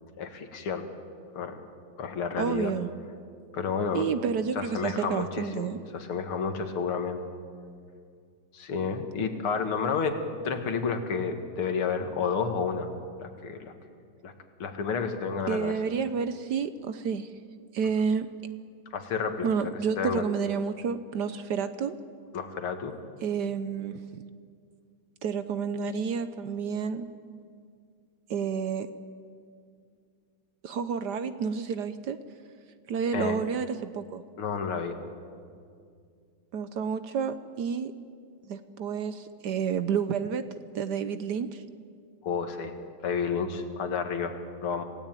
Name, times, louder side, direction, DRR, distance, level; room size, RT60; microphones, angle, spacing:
voice 1, 0.2-0.9 1.3-1.6 2.0-2.7 3.5-4.1 4.6-7.2 8.5-10.2 10.4-12.9 13.2-13.7 14.2-14.3 14.6-15.7 18.9-19.5 20.0-20.2 22.3-23.0 33.1-33.4 34.4-35.0 42.2-42.7 43.0-44.8, left 5 dB, 85° left, 6 dB, 2.6 m, -30 dB
voice 2, 2.4-2.9 3.9-5.8 15.5-17.3 17.7-18.3 19.4-21.9 23.2-24.0 25.2-27.1 28.3-28.9 30.6-32.2 32.9-34.2 36.5-37.9 38.5-40.4 40.7-41.6, right 6 dB, 65° right, 11 dB, 1.2 m, -30 dB
26.5 x 17.0 x 9.1 m, 2.2 s
omnidirectional pair, 2.3 m